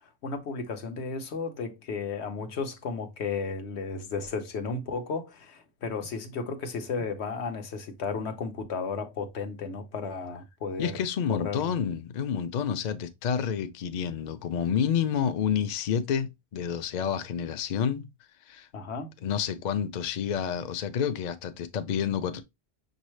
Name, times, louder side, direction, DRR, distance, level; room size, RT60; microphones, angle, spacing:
voice 1, 0.2-11.0 11.3-11.7 18.7-19.1, left 4 dB, 75° left, 1.1 m, -34 dB
voice 2, 10.8-18.1 18.5-18.7 19.2-22.4, left 8 dB, 55° left, 0.5 m, -29 dB
6.2 x 2.7 x 3.1 m
omnidirectional pair, 1.1 m